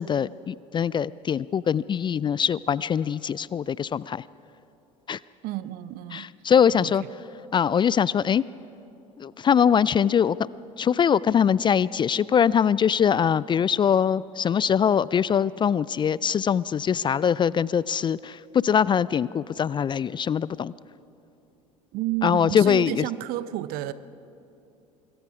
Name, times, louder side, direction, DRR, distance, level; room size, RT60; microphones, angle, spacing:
voice 1, 0.0-4.2 5.1-5.2 6.1-7.0 7.5-8.4 9.2-10.4 10.8-20.7 22.2-23.1, left 8 dB, 25° left, 0.4 m, -22 dB
voice 2, 5.4-6.3 6.8-6.9 21.9-23.9, right 15 dB, 60° right, 0.7 m, -31 dB
25.5 x 22.5 x 4.8 m
hypercardioid pair, 65°, 17 cm